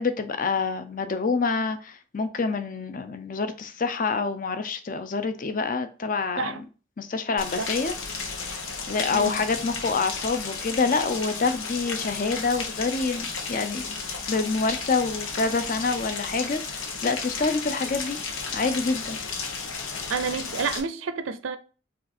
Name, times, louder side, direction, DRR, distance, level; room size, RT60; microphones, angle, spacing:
voice 1, 0.0-6.6 7.0-8.0 8.3-8.5 8.9-14.0 14.3-18.2 18.5-19.2, left 4 dB, 40° left, 0.5 m, -27 dB
Rain, 7.4-20.8, left 5 dB, 85° left, 0.9 m, -33 dB
voice 2, 9.1-9.4 20.1-21.6, right 5 dB, 85° right, 0.5 m, -29 dB
5.0 x 2.4 x 4.2 m
head